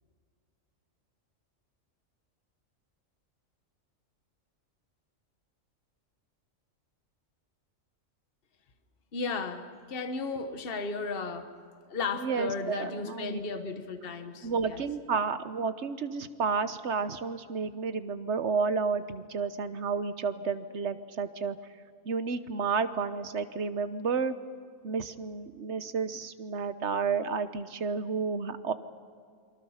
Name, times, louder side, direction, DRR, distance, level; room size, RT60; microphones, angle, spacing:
voice 1, 9.1-11.5 11.9-14.8, left 4 dB, 45° left, 7 dB, 1.4 m, -35 dB
voice 2, 12.2-13.4 14.4-21.6 22.0-24.3 24.8-28.7, right 5 dB, 60° right, 11 dB, 1.3 m, -31 dB
28.5 x 23.5 x 5.7 m, 2.2 s
omnidirectional pair, 1.4 m